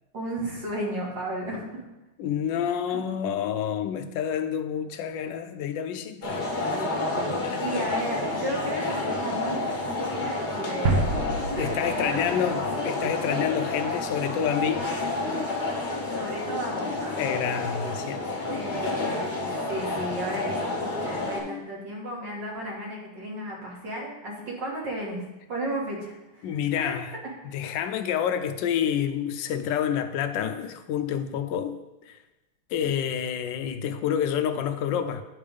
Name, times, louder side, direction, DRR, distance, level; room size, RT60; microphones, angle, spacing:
voice 1, 0.1-1.9 2.9-3.0 7.5-11.1 11.5-11.7 12.0-12.2 16.1-17.4 18.5-27.0 27.2-27.3, right 1 dB, 55° right, -4 dB, 2.2 m, -34 dB
voice 2, 2.2-6.8 7.4-7.9 11.6-14.9 17.2-18.2 21.4-21.6 26.4-27.1 27.5-31.8 32.1-32.2 32.7-35.2, left 9 dB, 75° left, 8 dB, 1.1 m, -28 dB
sound 1, 6.2-21.4, left 2 dB, 45° left, 0.6 m, -29 dB
sound 2, 10.8-13.3, right 2 dB, 80° right, 0.6 m, -28 dB
9.6 x 3.4 x 5.2 m, 1.0 s
omnidirectional pair, 2.4 m